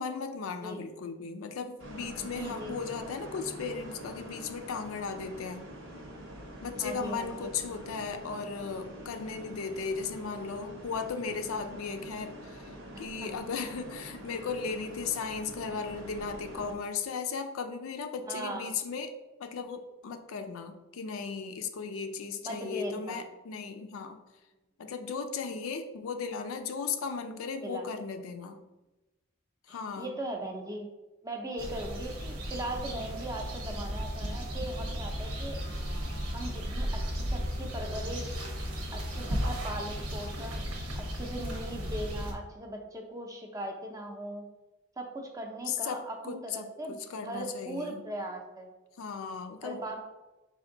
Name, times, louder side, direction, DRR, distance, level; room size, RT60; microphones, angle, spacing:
voice 1, 0.0-5.6 6.6-19.1 19.4-24.2 24.8-28.6 29.7-30.2 45.7-48.0 49.0-49.8, left 5 dB, 70° left, 6 dB, 0.4 m, -36 dB
sound 1, 1.8-16.8, equal, 65° right, 0.8 m, -46 dB
voice 2, 2.3-2.7 6.8-7.5 12.9-13.3 18.3-18.7 22.4-23.2 27.6-27.9 29.7-30.9 31.2-35.6 36.3-38.4 38.9-44.5 45.0-47.0 47.2-48.7 49.6-50.0, right 1 dB, 15° right, 2 dB, 0.5 m, -39 dB
sound 2, 31.6-42.3, equal, 85° right, 1.0 m, -35 dB
4.3 x 2.6 x 3.8 m, 1.1 s
head